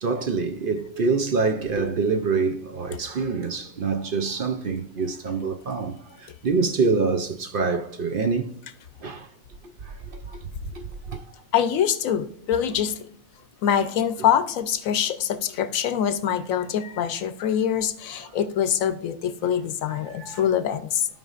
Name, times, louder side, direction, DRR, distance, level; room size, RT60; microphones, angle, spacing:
voice 1, 0.0-8.5 9.0-9.3 10.1-10.4 10.7-11.2 18.2-18.3 19.9-20.5, right 4 dB, 55° right, 0.6 m, -26 dB
voice 2, 11.5-12.9 13.6-21.1, left 9 dB, 75° left, 1.1 m, -24 dB
15.0 x 5.2 x 2.4 m
omnidirectional pair, 1.5 m